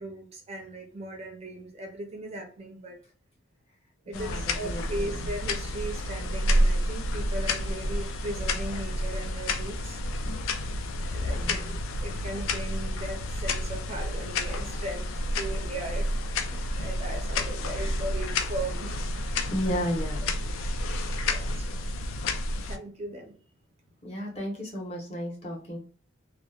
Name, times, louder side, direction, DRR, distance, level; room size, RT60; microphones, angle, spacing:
voice 1, 0.0-3.0 4.1-10.0 11.1-16.1 16.5-19.5 21.2-21.8 22.7-23.3, right 1 dB, 30° right, 2 dB, 0.4 m, -38 dB
sound 1, 4.1-22.8, left 1 dB, 75° left, 0.3 m, -30 dB
voice 2, 4.1-5.2 11.3-11.8 17.1-17.2 17.8-17.9 19.5-20.4 24.0-25.8, equal, 30° left, -3 dB, 0.8 m, -34 dB
2.7 x 2.0 x 2.3 m, 0.43 s
head